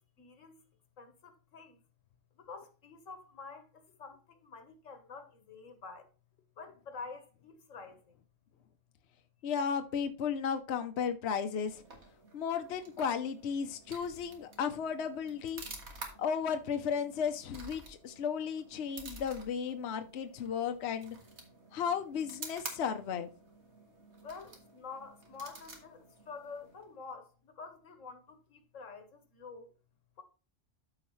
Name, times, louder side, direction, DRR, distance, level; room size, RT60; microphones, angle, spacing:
voice 1, 0.2-0.6 1.0-1.8 2.4-6.1 6.6-8.0 24.2-26.0 26.3-29.7, left 4 dB, 85° left, 1.6 m, -48 dB
voice 2, 9.4-11.8 12.3-15.6 16.2-21.2 21.7-23.3, left 7 dB, 65° left, 1.0 m, -34 dB
sound 1, 11.4-27.0, right 2 dB, 60° right, 1.9 m, -51 dB
13.0 x 4.9 x 3.1 m
omnidirectional pair, 1.3 m